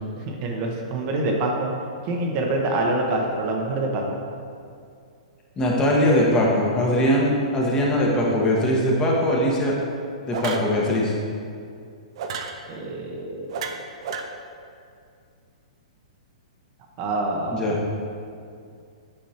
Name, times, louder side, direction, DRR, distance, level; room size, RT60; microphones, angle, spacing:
voice 1, 0.3-1.7 2.0-4.0 12.7-13.6 17.0-17.8, right 2 dB, 40° right, 0 dB, 0.9 m, -26 dB
voice 2, 5.6-9.7 10.3-11.1 17.5-17.8, left 1 dB, 20° left, -3 dB, 1.2 m, -21 dB
sound 1, 9.3-9.5 10.3-10.7 12.2-12.6 13.5-14.2, right 6 dB, 55° right, 0.6 m, -32 dB
8.8 x 5.2 x 2.9 m, 2.3 s
hypercardioid pair, 115°, 4 cm